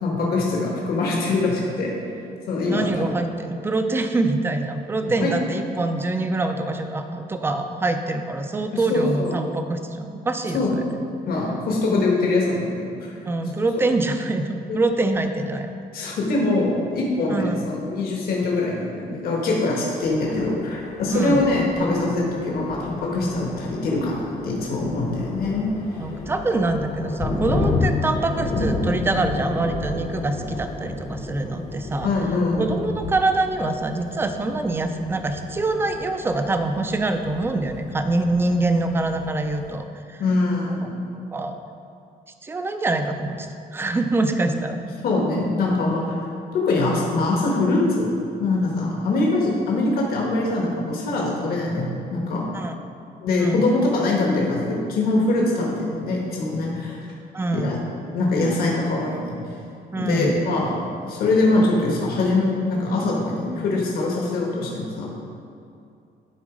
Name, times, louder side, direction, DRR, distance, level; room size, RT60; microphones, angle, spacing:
voice 1, 0.0-1.9 2.5-3.1 5.0-5.3 8.7-9.4 10.5-10.8 11.3-13.1 13.7-13.8 14.7-14.8 15.9-25.7 32.0-32.6 40.2-40.9 45.0-46.2 46.5-48.1 48.4-52.4 53.2-57.1 57.5-57.8 58.1-59.4 60.0-60.8 61.0-65.1, left 2 dB, 65° left, -2 dB, 1.4 m, -23 dB
voice 2, 2.7-10.8 13.3-15.7 17.3-17.6 21.1-21.4 26.0-32.1 32.6-40.2 40.8-41.5 42.4-44.8 52.5-52.7 53.4-53.7 57.3-57.7 59.9-60.3, right 2 dB, 15° right, 7 dB, 0.4 m, -25 dB
Thunder, 20.0-39.8, left 3 dB, 40° left, 0.9 m, -31 dB
11.0 x 4.0 x 4.9 m, 2.5 s
cardioid pair, 170°, 17 cm